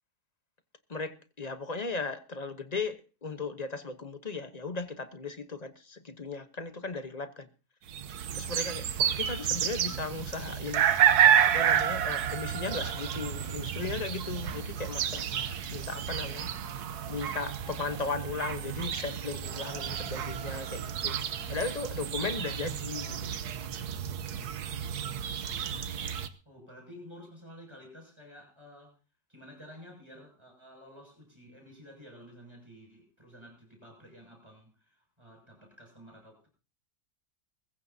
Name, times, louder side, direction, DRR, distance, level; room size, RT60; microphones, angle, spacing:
voice 1, 0.9-7.5 8.3-10.9 11.4-15.3 15.7-16.5 17.1-21.2 21.5-23.3, left 4 dB, 30° left, 1.0 m, -37 dB
sound 1, 7.9-26.3, right 9 dB, 85° right, 1.5 m, -30 dB
voice 2, 26.5-28.9 29.3-36.5, equal, 15° right, 6.9 m, -51 dB
22.0 x 15.0 x 2.8 m
omnidirectional pair, 1.6 m